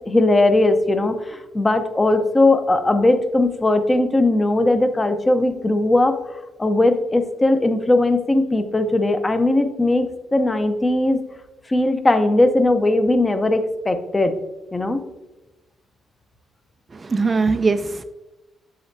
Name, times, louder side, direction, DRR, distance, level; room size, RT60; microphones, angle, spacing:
voice 1, 0.0-11.2 11.7-14.3 14.7-15.0, left 2 dB, 20° left, 8 dB, 0.7 m, -19 dB
voice 2, 16.9-18.0, right 4 dB, 30° right, 10 dB, 0.3 m, -21 dB
7.8 x 6.2 x 2.6 m, 1.0 s
cardioid pair, 90°, 0 cm